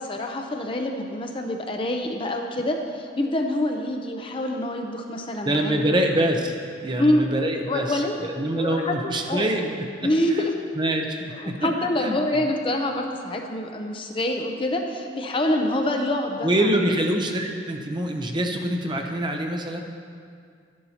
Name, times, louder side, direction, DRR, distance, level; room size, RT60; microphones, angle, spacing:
voice 1, 0.0-5.9 7.0-7.2 7.7-9.5 10.0-10.5 11.4-16.7, left 1 dB, 25° left, 3 dB, 0.6 m, -26 dB
voice 2, 5.4-9.8 10.3-10.4 10.8-11.6 12.0-12.4 16.4-19.8, right 1 dB, 25° right, 3 dB, 0.7 m, -25 dB
12.0 x 11.0 x 2.9 m, 2.2 s
head